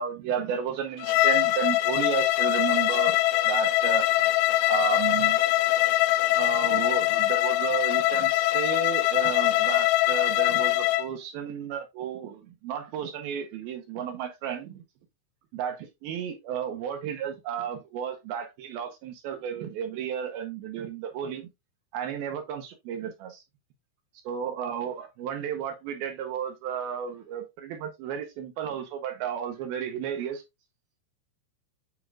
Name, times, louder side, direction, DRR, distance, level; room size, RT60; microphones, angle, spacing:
voice 1, 0.0-3.2 3.5-4.1 4.7-5.4 6.3-14.8 15.5-21.5 21.9-23.4 24.3-30.4, right 8 dB, 75° right, 2.3 m, -33 dB
Bowed string instrument, 1.0-11.1, left 17 dB, 80° left, 2.9 m, -23 dB
9.1 x 4.6 x 2.3 m
omnidirectional pair, 5.2 m